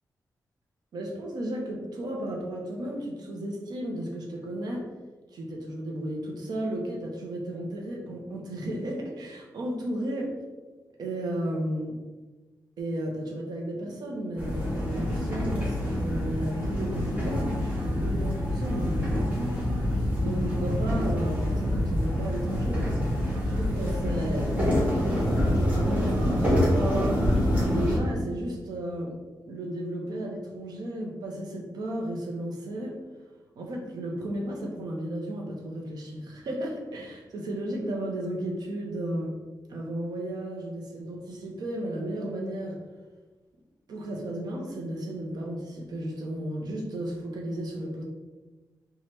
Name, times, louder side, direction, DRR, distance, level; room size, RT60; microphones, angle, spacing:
voice 1, 0.9-4.8 5.3-10.3 11.0-11.9 12.8-19.6 20.2-22.8 23.4-27.2 27.7-29.2 29.5-32.9 33.6-39.4 39.7-42.8 43.9-48.0, right 1 dB, 85° right, 0 dB, 0.8 m, -34 dB
sound 1, 14.4-28.0, left 1 dB, 20° right, 1.0 m, -26 dB
3.1 x 2.4 x 4.3 m, 1.2 s
wide cardioid pair, 180°, 7 cm